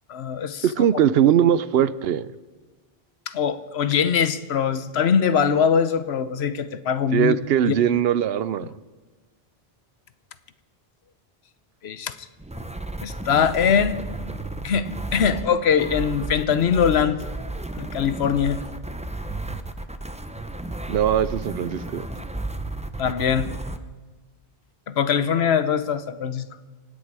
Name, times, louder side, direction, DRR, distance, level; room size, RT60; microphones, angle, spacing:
voice 1, 0.1-0.6 3.3-7.4 7.7-7.8 11.8-12.1 13.0-14.0 14.6-17.2 17.8-18.6 23.0-23.5 24.9-26.5, left 7 dB, 85° left, 13 dB, 1.1 m, -22 dB
voice 2, 0.6-2.3 7.1-8.7 20.9-22.1, right 9 dB, 75° right, 16 dB, 0.8 m, -20 dB
sound 1, 12.4-23.8, right 2 dB, 10° right, 0.6 m, -33 dB
25.0 x 9.7 x 4.8 m, 1.3 s
omnidirectional pair, 1.0 m